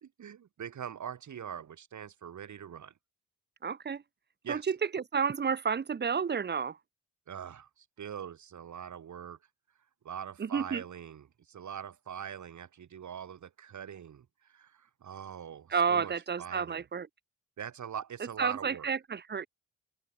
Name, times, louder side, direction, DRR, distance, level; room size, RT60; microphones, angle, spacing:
voice 1, 0.0-2.9 4.4-4.7 7.3-9.4 10.0-16.1 16.4-16.8 17.6-18.9, right 8 dB, 60° right, 2.7 m, -43 dB
voice 2, 3.6-4.0 4.5-6.8 10.4-10.8 15.7-17.1 18.4-19.5, right 6 dB, 30° right, 0.9 m, -31 dB
open air
cardioid pair, 75°, 33 cm